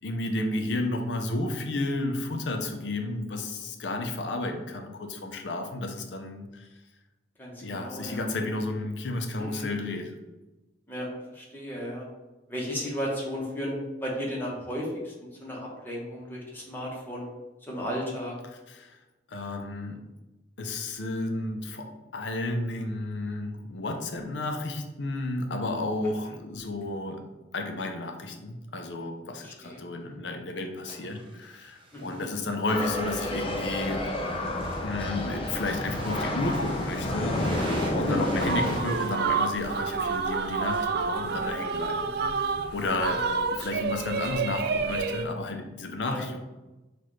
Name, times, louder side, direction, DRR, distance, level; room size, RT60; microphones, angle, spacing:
voice 1, 0.0-6.7 7.6-10.1 18.7-19.0 19.3-20.0 20.6-27.2 27.5-34.4 34.8-37.5 37.9-46.4, left 2 dB, 85° left, 5 dB, 0.6 m, -32 dB
voice 2, 7.4-8.6 9.4-9.7 10.9-12.1 12.5-15.1 15.4-17.3 17.6-18.3 29.4-29.8 30.1-30.2 31.9-32.2 38.1-38.3 38.6-38.8 42.2-42.3 42.8-43.2 46.0-46.2, equal, 10° left, -4 dB, 1.1 m, -35 dB
sound 1, 30.9-40.9, right 2 dB, 30° right, 0.8 m, -47 dB
sound 2, 32.7-38.8, left 1 dB, 30° left, 0.5 m, -30 dB
sound 3, 38.4-45.3, right 5 dB, 60° right, 0.3 m, -29 dB
5.8 x 2.5 x 3.2 m, 1.1 s
head